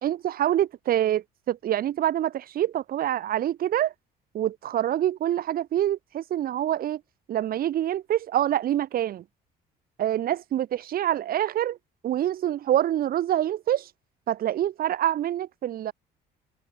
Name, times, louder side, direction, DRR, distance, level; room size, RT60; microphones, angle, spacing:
voice 1, 0.0-3.9 4.3-7.0 7.3-9.2 10.0-11.8 12.0-13.9 14.3-15.9, right 12 dB, 60° right, 2.5 m, -26 dB
cardioid pair, 110°, 17 cm